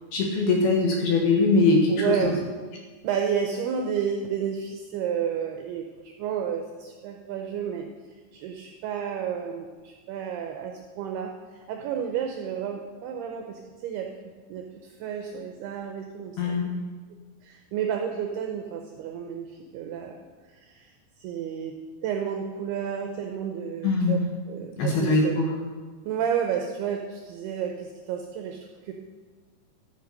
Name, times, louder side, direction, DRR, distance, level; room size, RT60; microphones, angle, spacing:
voice 1, 0.1-2.3 16.4-16.7 23.8-24.2 24.8-25.5, left 3 dB, 65° left, 0 dB, 3.0 m, -22 dB
voice 2, 1.9-2.4 3.0-7.9 8.3-11.3 11.7-14.1 14.5-16.7 17.4-19.5 19.7-20.1 20.6-20.9 21.2-21.8 22.0-24.2 24.5-25.4 26.1-28.9, right 8 dB, 80° right, 3 dB, 2.3 m, -31 dB
13.0 x 6.8 x 5.3 m, 1.5 s
omnidirectional pair, 5.3 m